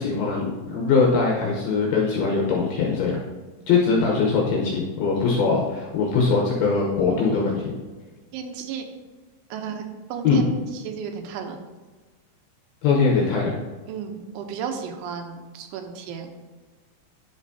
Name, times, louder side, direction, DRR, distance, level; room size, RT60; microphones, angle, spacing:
voice 1, 0.0-3.2 3.7-7.7 10.2-10.5 12.8-13.6, left 4 dB, 75° left, -2 dB, 2.3 m, -21 dB
voice 2, 8.3-8.9 9.5-11.6 13.9-16.3, right 6 dB, 85° right, 5 dB, 3.1 m, -33 dB
10.5 x 5.8 x 2.7 m, 1.3 s
omnidirectional pair, 5.4 m